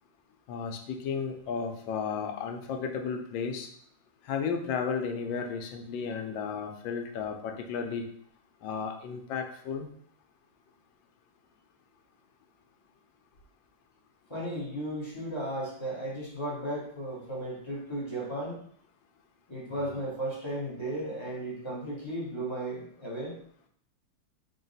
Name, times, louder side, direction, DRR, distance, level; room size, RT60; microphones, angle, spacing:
voice 1, 0.5-3.7 4.3-8.0 8.6-9.9 19.8-19.9, left 6 dB, 85° left, 4 dB, 1.3 m, -33 dB
voice 2, 14.3-18.6 19.5-23.3, right 1 dB, 25° left, -6 dB, 0.7 m, -35 dB
4.0 x 2.2 x 3.9 m, 0.63 s
omnidirectional pair, 2.0 m